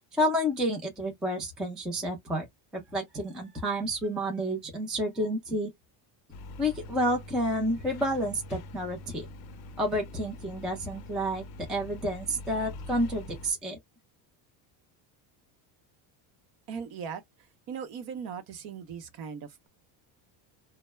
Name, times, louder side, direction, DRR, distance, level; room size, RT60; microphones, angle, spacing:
voice 1, 0.1-2.4 2.7-5.7 6.6-9.3 9.8-11.4 11.7-13.8, equal, ahead, 0.4 m, -30 dB
sound 1, 6.3-13.5, left 2 dB, 50° left, 0.6 m, -44 dB
voice 2, 16.7-17.2 17.7-19.7, right 6 dB, 50° right, 0.7 m, -38 dB
2.2 x 2.0 x 3.0 m
cardioid pair, 160°, 48 cm